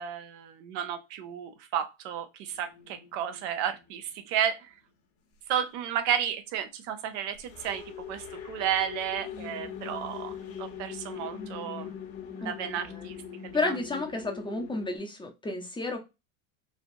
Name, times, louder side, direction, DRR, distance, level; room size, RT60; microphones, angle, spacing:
voice 1, 0.0-4.7 5.5-10.3 10.6-11.9 12.4-13.2 13.4-13.8, right 9 dB, 60° right, 0.7 m, -32 dB
sound 1, 2.5-4.3 7.3-15.0, left 8 dB, 60° left, 1.2 m, -42 dB
voice 2, 12.4-13.1 13.5-16.0, left 2 dB, 10° left, 0.7 m, -32 dB
3.3 x 2.4 x 2.5 m
hypercardioid pair, 100°, 40 cm